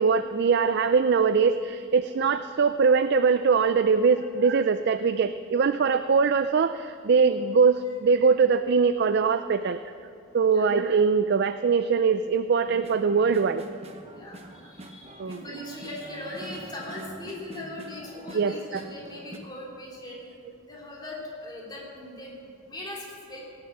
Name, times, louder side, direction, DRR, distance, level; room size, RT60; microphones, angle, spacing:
voice 1, 0.0-9.8 10.3-13.6 15.2-15.4 18.3-18.8, right 5 dB, 50° right, 10 dB, 0.4 m, -22 dB
sound 1, 12.7-19.4, right 1 dB, 30° right, 1.0 m, -45 dB
voice 2, 14.1-20.3 20.7-23.4, left 1 dB, 20° left, -4 dB, 3.2 m, -40 dB
17.0 x 8.7 x 7.6 m, 2.5 s
head